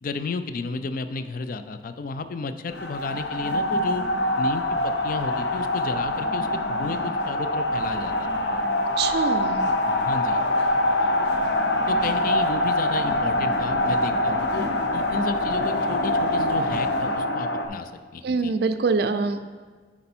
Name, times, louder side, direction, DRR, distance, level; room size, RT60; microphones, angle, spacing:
voice 1, 0.0-4.0 4.4-8.3 9.9-10.4 11.1-11.3 11.9-14.7 14.9-18.5, left 4 dB, 50° left, 10 dB, 0.4 m, -33 dB
sound 1, 2.7-17.7, left 1 dB, 75° left, 0.8 m, -24 dB
voice 2, 9.0-9.6 18.2-19.4, right 4 dB, 60° right, 9 dB, 0.4 m, -24 dB
9.6 x 4.3 x 4.3 m, 1.5 s
head